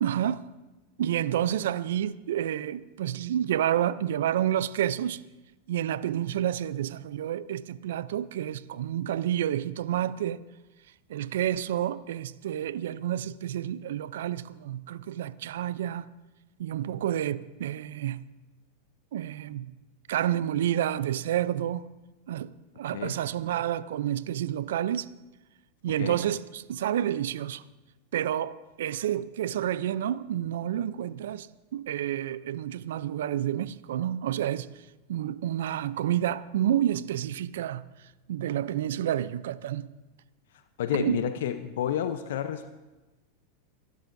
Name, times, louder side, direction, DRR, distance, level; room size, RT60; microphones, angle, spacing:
voice 1, 0.0-0.4 1.0-5.2 5.7-10.4 11.1-16.1 16.6-18.2 19.1-19.7 20.1-21.8 22.3-22.5 22.8-25.1 25.8-27.6 28.1-31.5 31.7-34.7 35.1-37.8 38.3-39.9 40.9-41.2, right 11 dB, 75° right, 0.5 m, -29 dB
voice 2, 40.8-42.7, left 10 dB, 70° left, 0.7 m, -30 dB
27.5 x 12.0 x 2.7 m
hypercardioid pair, 105°, 0 cm